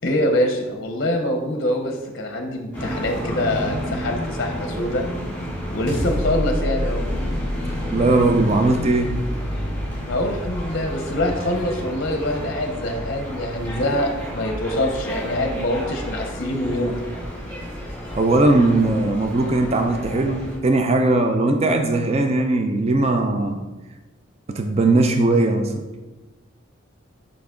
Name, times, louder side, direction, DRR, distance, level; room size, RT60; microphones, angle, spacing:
voice 1, 0.0-5.0 5.7-7.0 10.1-17.0, left 1 dB, 45° left, 4 dB, 0.6 m, -24 dB
sound 1, 2.7-20.5, equal, 10° left, 1.9 m, -31 dB
sound 2, 5.9-10.4, equal, 60° right, 1.0 m, -29 dB
voice 2, 7.9-9.2 18.1-23.6 24.5-25.9, right 2 dB, 30° right, 5 dB, 0.4 m, -19 dB
5.9 x 5.1 x 3.7 m, 1.1 s
head